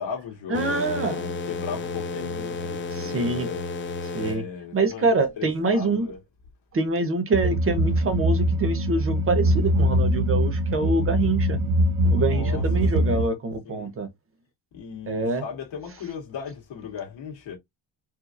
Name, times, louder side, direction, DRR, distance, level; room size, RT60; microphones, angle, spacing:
voice 1, 0.0-3.7 4.2-6.2 12.3-13.3 13.6-13.9 14.7-17.6, left 6 dB, 60° left, 1.8 m, -37 dB
sound 1, 0.5-4.4, left 3 dB, 25° left, 0.4 m, -32 dB
voice 2, 0.5-1.2 3.0-3.5 4.1-4.4 4.7-6.1 6.7-11.6 12.1-14.1 15.1-15.4, right 3 dB, 25° right, 0.8 m, -25 dB
sound 2, 7.3-13.3, equal, 80° right, 0.9 m, -22 dB
4.9 x 2.7 x 2.6 m
cardioid pair, 175°, 49 cm